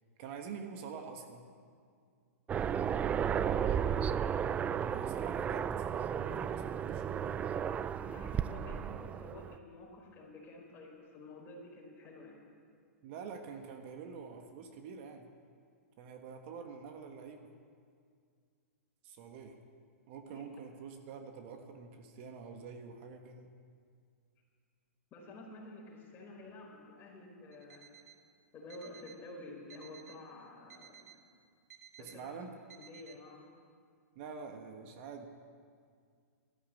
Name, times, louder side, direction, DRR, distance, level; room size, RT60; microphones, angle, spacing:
voice 1, 0.2-1.4 4.8-7.4 13.0-15.3 16.0-17.5 19.0-19.6 20.1-23.5 32.0-32.5 34.1-35.3, right 5 dB, 50° right, 5 dB, 1.5 m, -46 dB
Aircraft, 2.5-9.6, right 8 dB, 15° right, 0.3 m, -34 dB
voice 2, 3.3-4.1 8.0-12.4 20.3-20.4 25.1-27.9 28.5-31.2 32.0-32.5 32.8-33.5, left 2 dB, 25° left, -1 dB, 4.4 m, -50 dB
Alarm, 27.5-28.2 28.7-29.2 29.7-30.2 30.7-31.2 31.7-32.2 32.7-33.2, right 9 dB, 85° right, 1.6 m, -56 dB
13.0 x 13.0 x 8.6 m, 2.2 s
hypercardioid pair, 130°, 8 cm